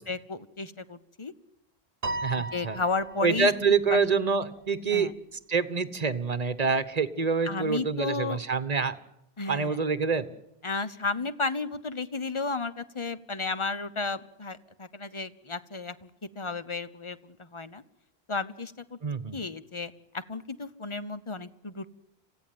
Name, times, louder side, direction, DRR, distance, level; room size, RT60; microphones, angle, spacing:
voice 1, 0.1-1.3 2.3-3.5 3.9-4.1 4.9-5.1 7.4-8.4 9.4-9.8 10.6-17.8 18.3-18.7 19.3-21.9, left 3 dB, 30° left, 13 dB, 1.0 m, -33 dB
Piano, 2.0-3.6, right 2 dB, 60° right, 1.2 m, -35 dB
voice 2, 2.2-2.8 3.2-5.1 5.5-9.0 9.5-10.3 19.0-19.4, right 5 dB, 40° right, 13 dB, 1.2 m, -26 dB
27.0 x 16.0 x 9.4 m, 0.86 s
omnidirectional pair, 1.1 m